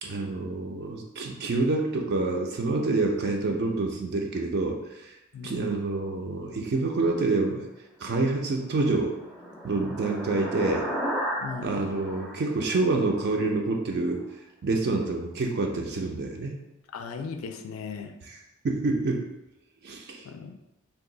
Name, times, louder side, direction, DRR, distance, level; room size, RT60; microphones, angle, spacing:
voice 1, 0.0-5.1 5.4-7.7 8.0-9.1 9.6-10.9 11.6-14.2 14.6-16.6 18.3-18.4 18.6-19.3 19.8-20.2, right 3 dB, 50° right, 1 dB, 0.4 m, -27 dB
sound 1, 8.5-13.3, equal, 5° left, 0.5 m, -34 dB
voice 2, 11.4-11.8 16.9-18.1 20.2-20.6, left 5 dB, 70° left, 6 dB, 0.3 m, -37 dB
2.7 x 2.3 x 3.8 m, 0.93 s
head